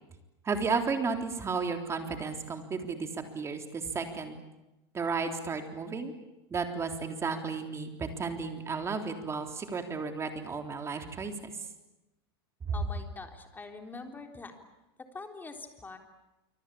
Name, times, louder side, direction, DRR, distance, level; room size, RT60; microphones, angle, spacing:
voice 1, 0.5-4.4 4.9-6.1 6.5-11.5, right 4 dB, 20° right, 5 dB, 3.6 m, -33 dB
voice 2, 12.7-14.5 15.0-16.0, left 3 dB, 15° left, 4 dB, 3.7 m, -44 dB
26.5 x 24.5 x 8.6 m, 0.98 s
supercardioid pair, 130°, 14 cm